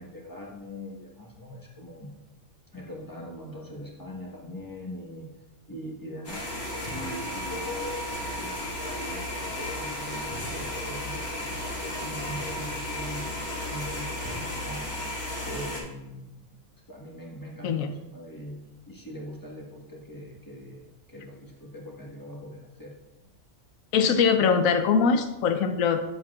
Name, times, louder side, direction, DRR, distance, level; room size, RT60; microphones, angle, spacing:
voice 1, 0.0-2.1 2.7-5.3 5.7-6.5 6.9-16.4 16.9-18.6 18.9-22.9, left 1 dB, 15° left, -2 dB, 1.3 m, -41 dB
sound 1, 6.2-15.8, left 1 dB, 55° left, 1.9 m, -34 dB
voice 2, 23.9-26.0, left 6 dB, 90° left, 8 dB, 1.0 m, -22 dB
9.0 x 7.4 x 2.4 m, 0.97 s
omnidirectional pair, 1.4 m